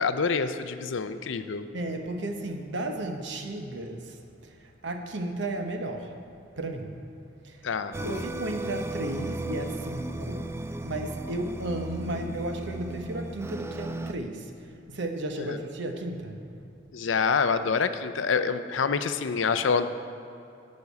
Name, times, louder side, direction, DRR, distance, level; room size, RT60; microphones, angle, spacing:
voice 1, 0.0-1.7 7.6-8.2 15.5-15.6 16.9-19.9, left 5 dB, 80° left, 10 dB, 0.5 m, -27 dB
voice 2, 1.7-4.2 4.4-6.1 6.6-7.0 7.4-7.6 8.0-10.5 10.8-16.4, right 1 dB, 70° right, 4 dB, 1.0 m, -34 dB
sound 1, 7.9-14.1, right 2 dB, 15° right, 0.3 m, -35 dB
10.5 x 5.4 x 8.4 m, 2.6 s
head